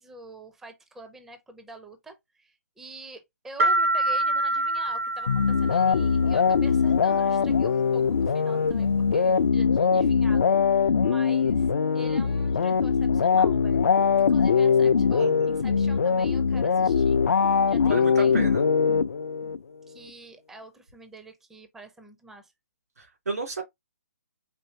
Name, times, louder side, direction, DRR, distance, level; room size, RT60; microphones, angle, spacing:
voice 1, 0.0-17.2 17.7-18.3 19.9-22.5, right 2 dB, 5° right, 0.5 m, -46 dB
sound 1, 3.6-6.2, right 2 dB, 60° right, 0.6 m, -25 dB
sound 2, 5.3-19.6, left 6 dB, 65° left, 0.4 m, -22 dB
voice 2, 17.9-18.6 23.0-23.6, right 4 dB, 80° right, 2.2 m, -32 dB
4.4 x 3.0 x 2.6 m
figure-of-eight pair, 145°, 8 cm